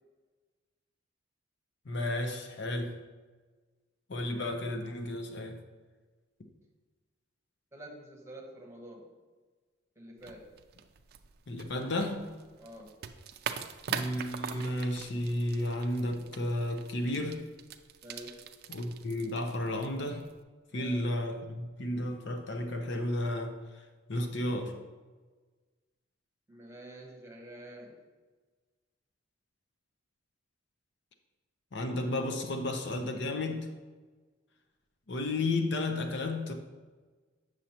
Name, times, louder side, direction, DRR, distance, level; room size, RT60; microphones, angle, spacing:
voice 1, 1.9-3.0 4.1-5.6 11.5-12.3 13.9-17.5 18.7-20.3 20.7-24.8 31.7-33.7 35.1-36.5, left 1 dB, 60° left, 5 dB, 0.6 m, -33 dB
voice 2, 7.7-9.1 10.0-10.5 12.6-13.0 18.0-18.5 20.7-21.1 26.5-28.0, right 1 dB, 15° right, -1 dB, 1.0 m, -48 dB
sound 1, 10.2-20.4, right 7 dB, 50° right, 0.4 m, -43 dB
8.0 x 6.3 x 2.9 m, 1.4 s
head